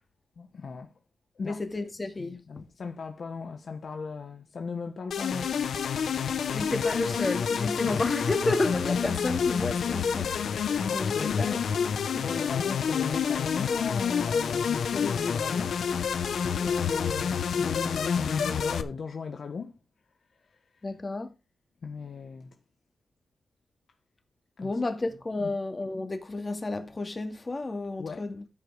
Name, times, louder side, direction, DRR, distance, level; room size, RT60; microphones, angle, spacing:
voice 1, 0.4-0.9 1.3-1.6 2.2-5.6 7.8-8.0 10.8-11.5 12.2-15.9 16.4-19.8 21.8-22.5 24.6-24.7 25.4-25.5 28.0-28.3, left 5 dB, 60° left, 1.1 m, -36 dB
voice 2, 1.4-2.4 6.5-10.4 10.9-11.6 12.1-12.2 20.8-21.3 24.6-28.4, left 2 dB, 30° left, 2.2 m, -31 dB
sound 1, 5.1-18.8, left 7 dB, 85° left, 0.9 m, -28 dB
13.5 x 5.2 x 4.8 m
cardioid pair, 85°, 0 cm